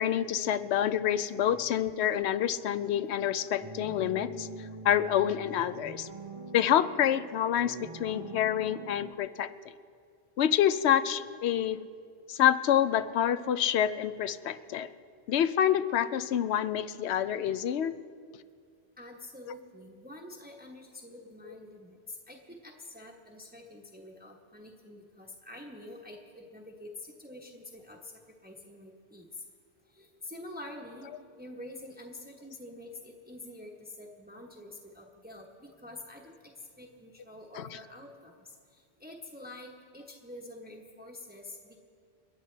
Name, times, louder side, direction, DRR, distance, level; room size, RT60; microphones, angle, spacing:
voice 1, 0.0-6.1 6.5-9.5 10.4-11.8 12.3-14.9 15.3-17.9 21.5-21.6 37.6-37.7, left 10 dB, 90° left, 13 dB, 0.9 m, -27 dB
sound 1, 3.6-9.1, right 3 dB, 35° right, 0.6 m, -44 dB
voice 2, 19.0-28.1 28.4-29.4 29.9-31.1 31.4-41.8, left 1 dB, 10° right, -1 dB, 1.1 m, -47 dB
30.0 x 10.0 x 3.3 m, 2.2 s
omnidirectional pair, 1.1 m